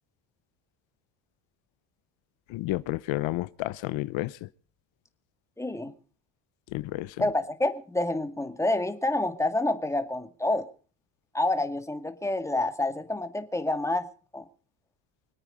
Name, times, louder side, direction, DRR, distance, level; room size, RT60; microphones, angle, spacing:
voice 1, 2.5-4.3 6.7-7.1, left 17 dB, 80° left, 0.9 m, -30 dB
voice 2, 5.6-5.9 7.2-10.7 11.3-14.1 14.3-14.5, left 2 dB, 5° left, 2.1 m, -28 dB
25.5 x 8.9 x 5.4 m
cardioid pair, 105°, 45 cm